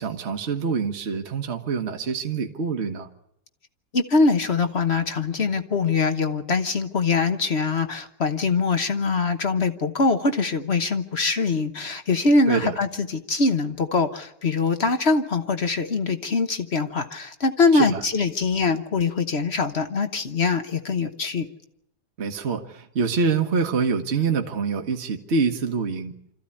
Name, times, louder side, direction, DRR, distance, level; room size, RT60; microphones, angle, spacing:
voice 1, 0.0-3.1 12.5-12.7 17.7-18.0 22.2-26.1, right 5 dB, 40° right, 3 dB, 1.4 m, -25 dB
voice 2, 3.9-21.5, left 4 dB, 45° left, 8 dB, 1.2 m, -23 dB
26.0 x 14.0 x 9.8 m, 0.80 s
omnidirectional pair, 1.8 m